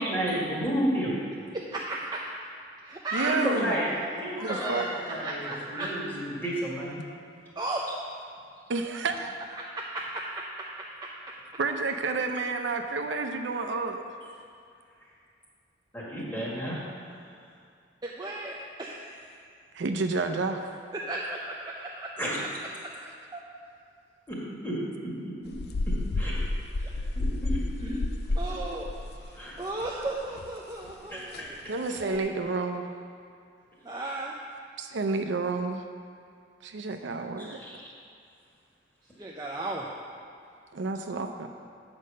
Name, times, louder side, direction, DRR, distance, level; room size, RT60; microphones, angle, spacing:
voice 1, 0.0-1.1 3.3-3.9 4.2-7.0 15.0-15.1 15.9-17.2 22.2-22.4 24.3-24.4 24.6-24.8 25.0-25.1 25.4-25.5 25.9-26.3 27.2-27.9 29.3-29.6 31.1-31.7 37.4-37.9, equal, 10° left, -6 dB, 1.8 m, -32 dB
voice 2, 1.9-2.2 2.8-3.3 4.4-5.9 7.6-7.8 9.6-10.4 18.0-19.3 20.9-22.1 23.3-23.4 26.8-26.9 28.4-28.9 29.2-31.5 32.0-32.2 33.8-34.3 39.2-39.8, right 2 dB, 20° right, -3 dB, 0.5 m, -35 dB
voice 3, 3.1-3.7 4.4-4.9 8.7-9.3 11.6-14.0 19.7-20.6 31.7-32.9 34.8-35.8 36.6-37.6 40.7-41.5, right 3 dB, 80° right, 5 dB, 0.6 m, -30 dB
sound 1, 25.5-30.1 30.3-30.5 30.9-31.0 31.3-31.5 32.0-32.2, left 2 dB, 60° left, 0.4 m, -31 dB
8.5 x 5.2 x 6.4 m, 2.4 s
head